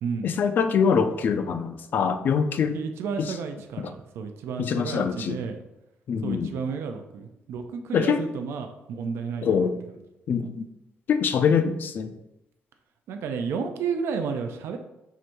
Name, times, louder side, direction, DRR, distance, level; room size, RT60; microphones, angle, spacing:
voice 1, 0.2-2.8 3.8-3.9 4.6-5.4 6.1-6.5 7.9-8.2 9.4-9.8 10.3-10.7 11.1-12.2, left 6 dB, 50° left, 9 dB, 0.3 m, -24 dB
voice 2, 2.7-5.6 6.2-9.7 13.1-14.8, right 5 dB, 80° right, 5 dB, 0.4 m, -32 dB
4.8 x 2.6 x 4.3 m, 0.89 s
cardioid pair, 165°, 4 cm